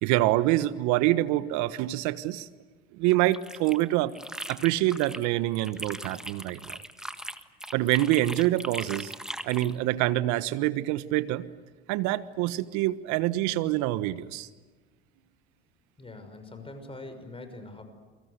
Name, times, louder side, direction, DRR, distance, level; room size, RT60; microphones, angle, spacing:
voice 1, 0.0-2.5 2.9-4.1 4.5-6.8 7.7-9.1 9.4-11.5 11.9-14.5, right 16 dB, 65° right, 15 dB, 1.3 m, -26 dB
sound 1, 3.1-5.3 5.6-9.8, equal, ahead, 1.5 m, -39 dB
voice 2, 16.0-17.8, left 2 dB, 15° left, 7 dB, 5.7 m, -43 dB
29.0 x 23.5 x 8.2 m, 1.3 s
hypercardioid pair, 75°, 31 cm